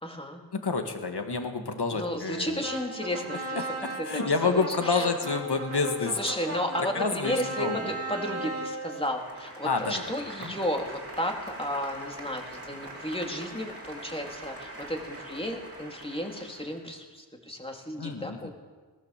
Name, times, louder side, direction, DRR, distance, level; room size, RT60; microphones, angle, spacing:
voice 1, 0.0-0.4 1.9-3.7 4.0-5.1 6.1-18.5, equal, 15° left, 2 dB, 3.3 m, -33 dB
voice 2, 0.6-2.6 3.6-6.2 6.9-7.8 9.6-9.9 10.4-10.5 18.0-18.5, left 4 dB, 65° left, 5 dB, 2.2 m, -29 dB
sound 1, 2.6-16.8, right 1 dB, 35° right, 4.1 m, -38 dB
19.0 x 19.0 x 7.6 m, 1.4 s
wide cardioid pair, 85°, 43 cm